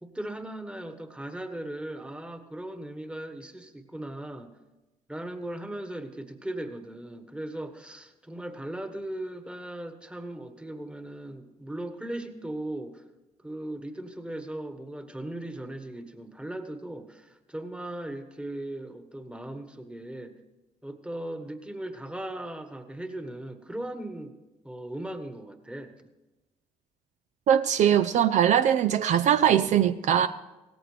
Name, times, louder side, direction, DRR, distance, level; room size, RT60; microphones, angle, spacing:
voice 1, 0.0-4.5 5.1-13.0 13.4-20.4 20.8-24.3 24.6-26.1, right 1 dB, 10° right, 1.4 m, -38 dB
voice 2, 27.5-30.3, right 9 dB, 65° right, 0.5 m, -21 dB
17.0 x 14.5 x 3.4 m
supercardioid pair, 65°, 13 cm